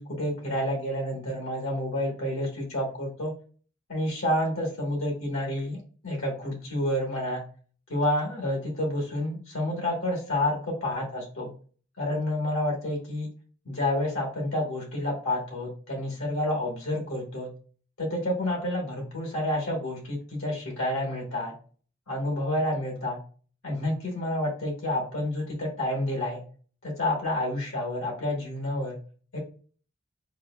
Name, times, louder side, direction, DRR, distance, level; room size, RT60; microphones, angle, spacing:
voice 1, 0.0-3.3 3.9-7.4 7.9-11.5 12.0-13.3 13.6-17.5 18.0-21.5 22.1-23.2 23.6-26.4 26.8-29.0 29.3-29.4, left 1 dB, 75° left, -1 dB, 1.3 m, -29 dB
6.0 x 2.2 x 2.2 m, 0.40 s
head